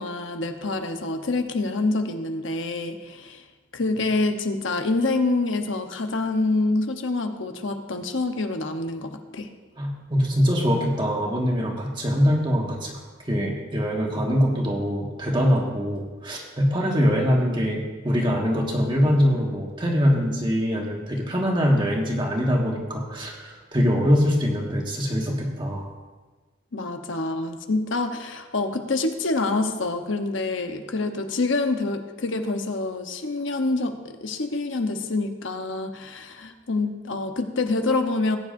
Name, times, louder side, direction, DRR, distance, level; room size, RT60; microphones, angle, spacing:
voice 1, 0.0-3.4 3.7-9.5 26.7-38.4, left 3 dB, 75° left, 6 dB, 1.0 m, -26 dB
voice 2, 9.8-13.0 13.3-25.8, equal, 25° right, -1 dB, 1.7 m, -23 dB
19.5 x 9.6 x 2.6 m, 1.3 s
head